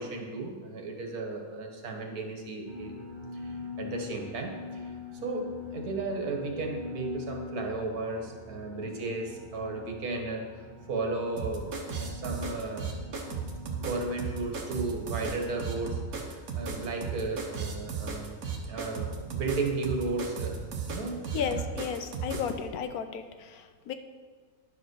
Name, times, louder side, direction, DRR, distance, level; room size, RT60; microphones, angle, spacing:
voice 1, 0.0-2.9 3.3-4.9 5.2-11.7 11.9-12.9 13.8-18.4 18.6-20.6 20.9-21.7, right 3 dB, 90° right, 2 dB, 1.8 m, -34 dB
sound 1, 2.6-20.8, left 4 dB, 30° right, 1.3 m, -45 dB
sound 2, 11.4-22.5, right 5 dB, 70° right, 1.6 m, -35 dB
voice 2, 21.3-23.9, left 7 dB, 85° left, 8 dB, 1.2 m, -34 dB
10.5 x 4.9 x 6.3 m, 1.5 s
omnidirectional pair, 1.5 m